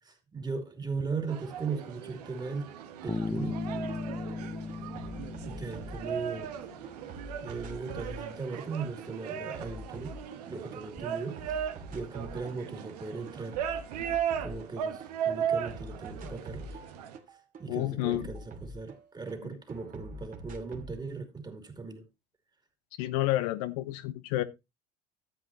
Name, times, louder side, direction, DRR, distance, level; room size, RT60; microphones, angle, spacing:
voice 1, 0.0-2.7 3.0-3.6 5.4-6.5 7.4-10.2 10.5-11.6 11.9-13.6 14.4-16.8 17.6-22.0, right 4 dB, 20° right, 2.6 m, -38 dB
sound 1, 1.3-17.2, right 8 dB, 80° right, 1.2 m, -37 dB
Bass guitar, 3.1-6.8, left 4 dB, 15° left, 0.9 m, -37 dB
sound 2, 3.9-4.0 4.3-6.5 6.8-10.8 11.1-12.6 12.9-15.1 15.4-19.4 19.7-21.0, right 1 dB, 45° right, 2.4 m, -45 dB
voice 2, 17.7-18.3 23.0-24.4, left 15 dB, 70° left, 0.8 m, -30 dB
13.5 x 7.8 x 2.8 m
hypercardioid pair, 75°, 20 cm